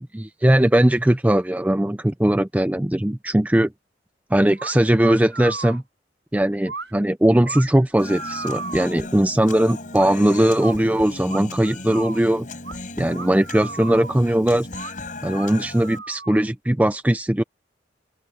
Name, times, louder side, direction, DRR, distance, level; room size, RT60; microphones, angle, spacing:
voice 1, 0.1-3.7 4.3-5.8 6.3-12.5 13.0-14.7 15.2-17.4, right 1 dB, 10° right, 0.4 m, -19 dB
sound 1, 4.6-4.8 5.0-5.8 6.7-6.9 7.4-9.0 10.0-10.8 11.3-12.2 12.6-12.8 13.1-14.2 14.7-15.0 15.3-16.5, right 4 dB, 80° right, 5.3 m, -36 dB
Human voice, 8.0-16.0, left 2 dB, 45° left, 5.9 m, -36 dB
open air
head